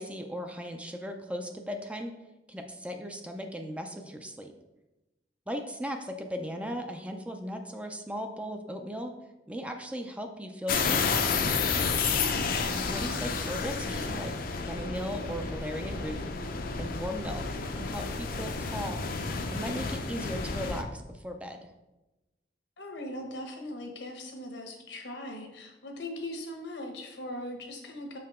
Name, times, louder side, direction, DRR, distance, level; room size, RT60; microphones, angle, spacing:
voice 1, 0.0-2.1 2.5-4.5 5.5-9.1 9.5-11.3 12.7-14.3 14.6-16.2 16.8-17.4 17.8-21.7, equal, 5° right, 5 dB, 0.4 m, -37 dB
sound 1, 10.7-20.8, left 4 dB, 55° left, 0.6 m, -31 dB
voice 2, 12.1-12.5 22.8-28.2, left 1 dB, 75° left, 3 dB, 1.2 m, -40 dB
6.2 x 4.7 x 3.6 m, 1.0 s
head